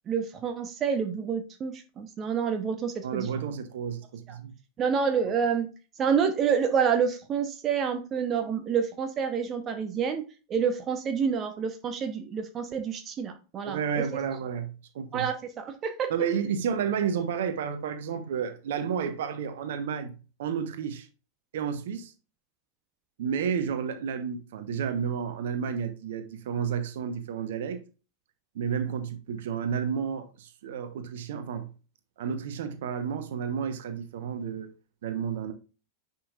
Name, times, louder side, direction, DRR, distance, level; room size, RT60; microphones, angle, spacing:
voice 1, 0.1-3.3 4.3-4.4 4.8-5.7 6.0-10.2 10.5-14.0 15.1-16.1, right 6 dB, 25° right, 0.9 m, -28 dB
voice 2, 3.0-4.5 5.2-5.3 13.6-15.3 16.1-21.1 21.5-22.1 23.2-27.8 28.5-31.7 32.2-34.7 35.0-35.5, right 7 dB, 55° right, 1.2 m, -31 dB
10.0 x 5.8 x 2.5 m
figure-of-eight pair, 90°, 0 cm